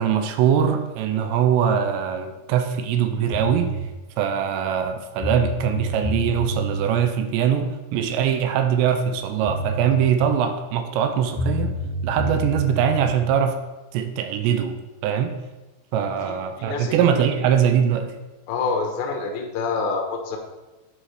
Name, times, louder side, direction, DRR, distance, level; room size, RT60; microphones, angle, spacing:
voice 1, 0.0-3.7 4.2-11.7 12.0-13.6 13.9-15.4 15.9-18.1, right 8 dB, 80° right, 7 dB, 2.8 m, -22 dB
sound 1, 3.3-3.8 4.9-5.0 5.2-6.9 9.1-9.2 9.5-10.1 11.4-13.1, right 1 dB, 60° left, 3.6 m, -28 dB
voice 2, 16.3-16.9 18.5-20.4, left 4 dB, 80° left, 2 dB, 3.2 m, -27 dB
8.9 x 4.8 x 4.9 m, 1.1 s
omnidirectional pair, 5.1 m